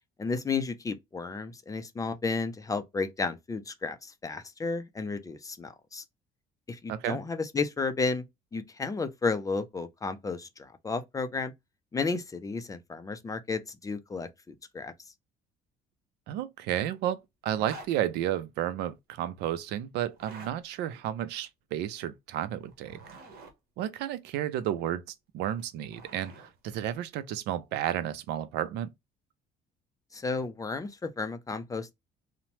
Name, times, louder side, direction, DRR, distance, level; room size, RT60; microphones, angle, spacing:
voice 1, 0.2-6.0 6.7-8.2 8.5-11.5 11.9-14.9 30.1-31.9, left 4 dB, 20° left, 0.4 m, -33 dB
voice 2, 6.9-7.2 16.3-23.0 23.8-25.0 25.3-28.9, right 11 dB, 90° right, 0.4 m, -32 dB
sound 1, 17.5-17.9 20.1-20.5 22.7-23.5 25.4-26.5, right 3 dB, 65° right, 1.0 m, -47 dB
2.8 x 2.1 x 2.9 m
cardioid pair, 110°, 17 cm